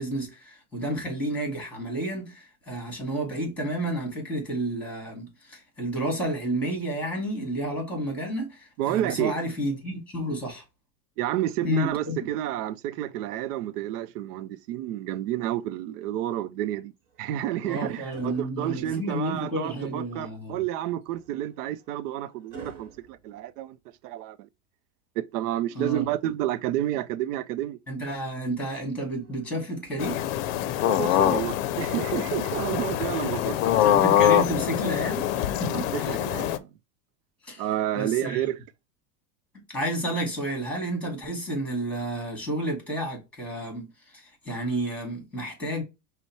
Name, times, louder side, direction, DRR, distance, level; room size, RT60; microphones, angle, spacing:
voice 1, 0.0-10.6 11.6-12.2 17.6-20.6 25.7-26.0 27.9-30.2 31.0-31.4 33.7-36.2 37.4-37.6 38.0-38.4 39.7-45.8, right 1 dB, 5° left, 2.1 m, -31 dB
voice 2, 8.8-9.3 11.2-16.9 17.2-23.8 24.0-24.5 25.2-27.8 30.8-33.8 35.7-35.8 36.1-36.7 37.6-38.6, right 13 dB, 75° right, 0.6 m, -30 dB
sound 1, 17.0-19.4 21.0-24.2 26.0-27.1 29.1-30.9 32.2-32.4, right 4 dB, 45° right, 1.4 m, -51 dB
sound 2, 30.0-36.6, left 12 dB, 60° left, 0.6 m, -24 dB
5.3 x 2.2 x 4.5 m
supercardioid pair, 130°, 47 cm